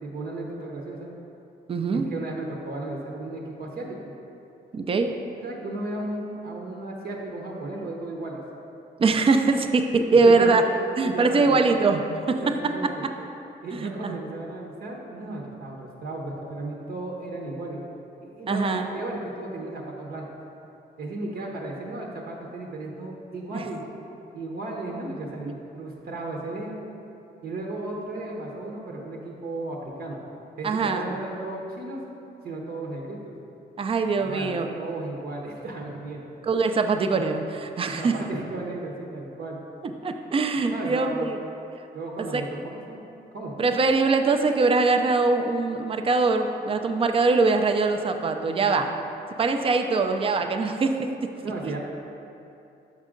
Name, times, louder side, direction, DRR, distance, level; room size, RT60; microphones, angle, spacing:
voice 1, 0.0-1.1 1.9-4.1 5.4-8.4 10.2-10.6 11.0-11.7 12.4-12.9 13.6-17.8 18.2-20.3 21.0-23.8 24.3-26.8 27.4-30.2 30.6-32.0 32.4-33.3 34.1-36.2 37.8-39.6 40.7-41.3 41.9-43.0 43.3-43.5 51.4-51.8, right 2 dB, 65° right, -1 dB, 0.9 m, -34 dB
voice 2, 1.7-2.1 4.7-5.1 9.0-10.6 11.0-12.0 12.3-12.4 13.7-14.2 18.5-18.9 23.5-23.6 30.6-31.1 33.8-34.7 36.4-38.1 40.0-41.4 42.3-42.4 43.6-48.9 49.4-51.1 51.6-51.7, right 4 dB, 30° right, 6 dB, 0.5 m, -22 dB
6.2 x 5.5 x 3.8 m, 2.8 s
cardioid pair, 100°, 17 cm